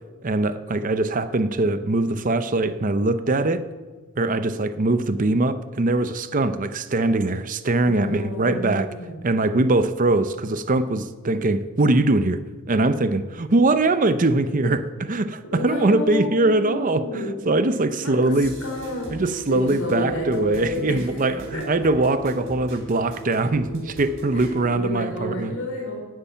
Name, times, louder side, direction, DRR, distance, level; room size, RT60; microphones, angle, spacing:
voice 1, 0.2-3.6 4.2-8.9 9.2-12.4 12.7-14.8 15.1-18.6 19.1-25.6, right 2 dB, 35° right, 11 dB, 0.6 m, -22 dB
voice 2, 7.8-9.2 14.6-14.7 15.4-17.4 18.0-19.1 19.5-21.7 24.3-26.0, left 1 dB, 70° left, 1 dB, 4.3 m, -31 dB
sound 1, 18.4-24.6, right 1 dB, 55° right, 3.3 m, -39 dB
11.5 x 8.3 x 9.1 m, 1.3 s
head